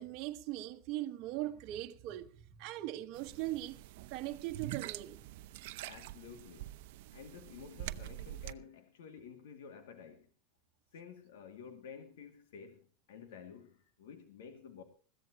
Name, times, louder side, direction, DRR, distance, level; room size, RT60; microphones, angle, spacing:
voice 1, 0.0-3.8 4.1-5.2, right 14 dB, 40° right, 1.4 m, -40 dB
sound 1, 3.1-8.5, right 15 dB, 60° right, 0.8 m, -45 dB
voice 2, 5.9-6.7 7.1-10.3 10.9-14.8, left 7 dB, 85° left, 2.3 m, -52 dB
21.5 x 15.0 x 3.0 m
supercardioid pair, 160°, 0 cm